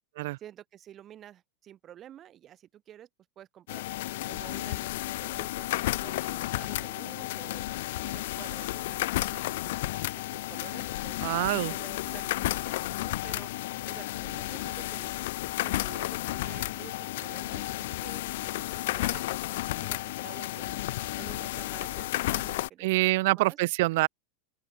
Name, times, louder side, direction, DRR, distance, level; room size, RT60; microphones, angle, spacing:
voice 1, 0.4-3.1 3.4-3.9 4.3-7.7 8.0-11.2 11.7-13.5 13.9-15.1 15.6-20.8 21.2-23.6, right 11 dB, 30° right, 2.3 m, -50 dB
sound 1, 3.7-22.7, left 17 dB, 65° left, 0.8 m, -32 dB
voice 2, 11.2-11.7 22.8-24.1, right 20 dB, 60° right, 0.3 m, -25 dB
sound 2, 11.6-22.5, left 6 dB, 15° left, 3.9 m, -59 dB
Wind instrument woodwind instrument, 16.5-20.4, right 1 dB, 5° right, 7.5 m, -64 dB
open air
supercardioid pair, 145°, 0 cm